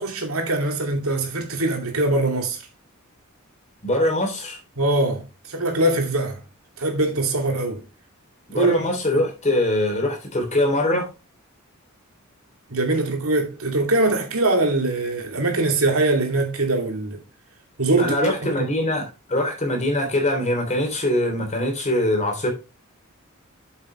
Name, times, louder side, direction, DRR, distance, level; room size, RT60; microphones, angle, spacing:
voice 1, 0.0-2.6 4.8-6.4 6.8-7.8 8.5-8.8 12.7-17.2 17.8-18.3, right 2 dB, 85° right, 2.6 m, -22 dB
voice 2, 3.8-4.6 8.5-11.1 18.0-22.5, left 1 dB, 35° left, 3.1 m, -22 dB
8.1 x 7.4 x 3.2 m
head